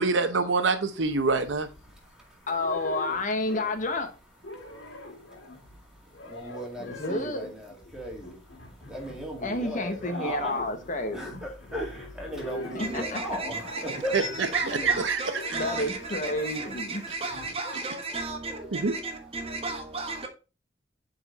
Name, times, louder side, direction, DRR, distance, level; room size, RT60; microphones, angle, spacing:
voice 1, 0.0-1.7 14.1-15.2 18.7-18.9, right 4 dB, 80° right, 0.8 m, -25 dB
sound 1, 1.0-2.1 2.5-3.9 4.2-16.9 17.3-17.5, left 1 dB, 80° left, 1.8 m, -43 dB
voice 2, 1.9-2.5 4.5-8.4 8.7-10.6 11.1-14.1 14.7-14.8 17.6-17.7 18.5-18.6, right 1 dB, 5° right, 2.0 m, -38 dB
voice 3, 2.5-4.1 6.8-7.5 9.4-11.4 12.7-13.2 14.1-15.0 15.5-17.0, left 2 dB, 45° left, 0.8 m, -31 dB
voice 4, 12.8-20.3, right 3 dB, 30° right, 1.4 m, -35 dB
7.6 x 4.1 x 3.9 m
head